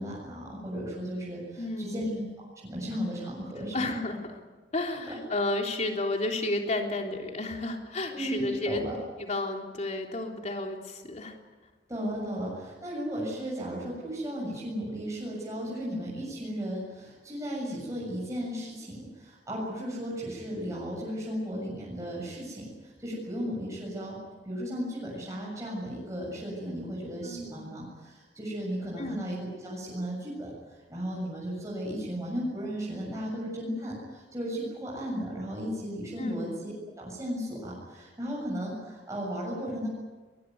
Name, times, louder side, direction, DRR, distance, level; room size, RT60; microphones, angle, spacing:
voice 1, 0.0-2.3 2.6-4.0 5.1-5.2 8.1-9.0 11.9-24.2 24.5-36.7 37.0-39.9, equal, 20° right, -5 dB, 7.3 m, -35 dB
voice 2, 1.6-2.1 3.7-4.2 4.7-8.8 9.2-11.4 27.2-27.7 29.0-29.2 36.2-36.5, left 2 dB, 40° left, 2 dB, 3.5 m, -32 dB
22.5 x 21.5 x 9.5 m, 1.3 s
head